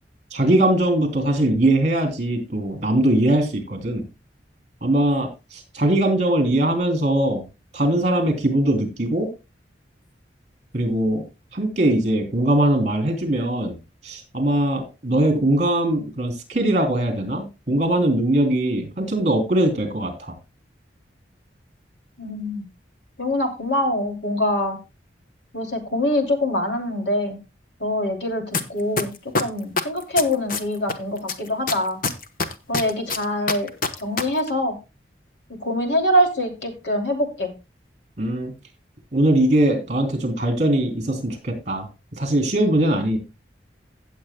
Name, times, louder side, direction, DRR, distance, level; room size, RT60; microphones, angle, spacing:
voice 1, 0.3-4.0 4.8-7.4 7.7-9.3 10.7-11.2 11.5-13.8 14.0-20.3 38.2-38.5 39.1-41.9 42.2-43.2, right 1 dB, 40° right, 4 dB, 3.3 m, -21 dB
voice 2, 22.2-22.6 23.2-24.8 25.5-27.4 27.8-32.0 32.7-33.7 34.0-34.8 35.5-37.5, left 1 dB, 70° left, 3 dB, 2.8 m, -24 dB
sound 1, 28.5-28.6 29.0-30.9 31.3-34.2 34.5-34.6, left 4 dB, 50° left, 1.0 m, -23 dB
16.5 x 7.8 x 2.2 m, 0.27 s
head